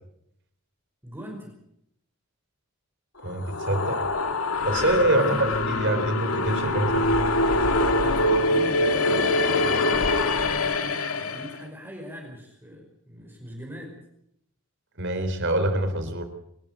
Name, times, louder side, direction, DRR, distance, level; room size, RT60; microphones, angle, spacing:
voice 1, 1.0-1.6 5.1-5.5 7.9-9.4 11.2-14.0, equal, 10° right, 0 dB, 5.5 m, -40 dB
sound 1, 3.2-11.6, left 2 dB, 85° left, 2.1 m, -24 dB
voice 2, 3.2-4.0 4.6-5.2 5.7-7.1 15.0-16.2, right 1 dB, 55° right, 8 dB, 4.2 m, -25 dB
27.0 x 13.5 x 8.2 m, 0.75 s
head